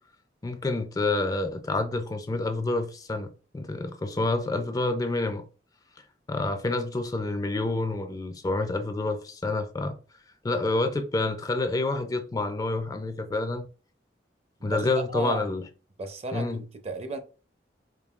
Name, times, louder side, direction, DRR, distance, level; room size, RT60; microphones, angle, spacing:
voice 1, 0.4-5.4 6.3-10.0 10.4-13.7 14.6-15.6 16.3-16.6, left 2 dB, 20° left, 0.3 m, -28 dB
voice 2, 14.6-15.5 16.0-17.2, right 2 dB, 35° right, 0.5 m, -35 dB
5.2 x 2.6 x 2.3 m
head